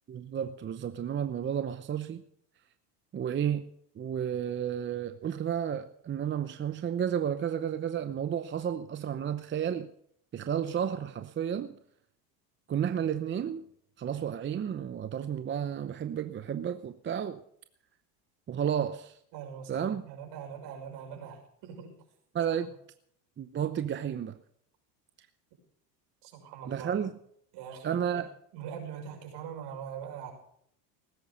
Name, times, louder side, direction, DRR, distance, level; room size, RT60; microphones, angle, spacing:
voice 1, 0.1-2.2 3.1-3.7 4.0-9.9 10.3-11.7 12.7-13.6 14.0-17.4 18.5-19.1 19.7-20.1 22.3-22.7 23.4-24.4 26.7-27.2 27.8-28.3, right 9 dB, 25° right, 0.8 m, -32 dB
voice 2, 19.3-21.9 26.2-26.9 27.5-28.2 28.5-30.3, right 8 dB, 55° right, 6.3 m, -42 dB
19.0 x 10.5 x 5.3 m
supercardioid pair, 115°, 50 cm